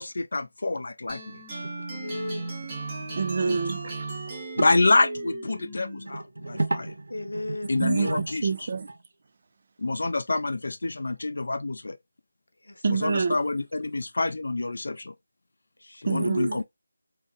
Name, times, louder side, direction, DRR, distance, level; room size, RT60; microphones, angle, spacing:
voice 1, 0.0-1.4 3.5-3.6 4.6-6.9 7.7-8.5 9.8-12.0 12.9-15.1 16.0-16.6, left 2 dB, 55° left, 0.4 m, -27 dB
sound 1, 1.1-6.2, right 3 dB, 15° right, 0.8 m, -36 dB
sound 2, 1.3-1.9 2.1-2.2 3.0-3.1 3.4-3.5 4.6-4.8 6.1-9.0 11.0-11.1, right 2 dB, 80° right, 0.7 m, -33 dB
voice 2, 1.9-2.5 7.1-7.9 12.6-13.3 15.8-16.3, left 2 dB, 85° left, 0.9 m, -36 dB
voice 3, 3.1-4.1 7.8-8.9 12.8-13.4 16.1-16.6, right 5 dB, 30° right, 0.3 m, -27 dB
2.6 x 2.1 x 3.8 m
figure-of-eight pair, 175°, 0 cm